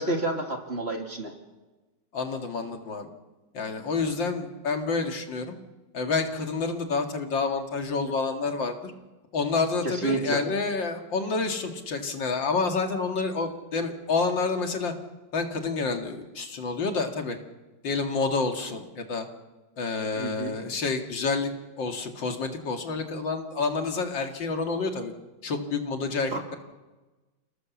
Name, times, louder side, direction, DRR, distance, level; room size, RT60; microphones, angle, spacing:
voice 1, 0.0-1.3 9.8-10.4 20.1-20.5 26.3-26.4, right 2 dB, 35° right, 3 dB, 3.0 m, -29 dB
voice 2, 2.1-3.1 3.5-5.5 5.9-8.9 9.3-14.9 15.3-17.4 17.8-19.3 19.8-21.5 21.8-25.1 25.4-26.6, left 4 dB, 90° left, 4 dB, 2.9 m, -28 dB
29.0 x 18.5 x 7.2 m, 1.2 s
omnidirectional pair, 2.0 m